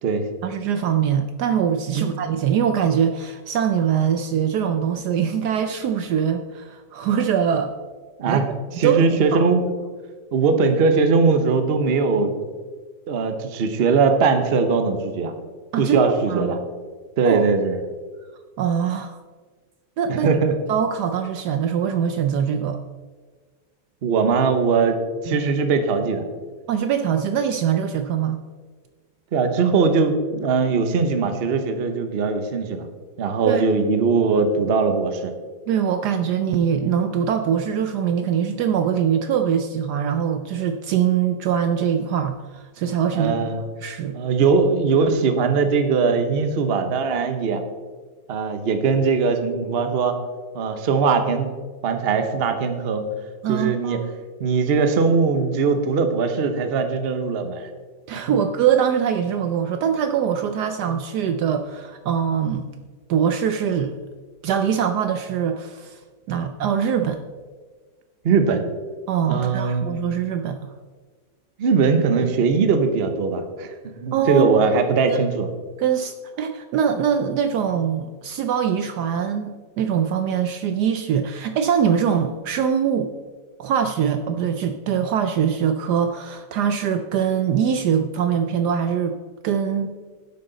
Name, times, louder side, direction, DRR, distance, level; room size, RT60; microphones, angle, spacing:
voice 1, 0.4-7.7 8.3-8.4 8.8-9.4 15.7-16.0 16.3-16.5 17.2-17.4 18.6-19.2 20.0-20.3 20.7-22.8 25.3-25.4 26.7-28.4 33.5-33.7 35.7-43.3 43.8-44.2 53.4-54.0 58.1-62.7 63.1-63.9 64.4-66.0 66.3-67.2 69.1-70.7 74.1-74.6 75.1-75.2 75.8-83.1 83.6-89.2 89.4-90.0, right 8 dB, 70° right, 8 dB, 1.0 m, -23 dB
voice 2, 8.8-9.9 10.3-12.4 13.1-15.3 15.8-16.6 17.2-17.8 20.1-20.5 24.0-26.3 29.3-32.9 33.2-35.3 43.1-43.6 44.1-47.6 48.3-50.2 50.5-51.5 51.8-53.1 53.5-54.0 54.4-57.7 58.3-58.4 68.2-68.6 69.3-69.9 71.6-75.5, right 5 dB, 45° right, 7 dB, 0.8 m, -20 dB
11.0 x 7.9 x 3.9 m, 1.4 s
omnidirectional pair, 2.0 m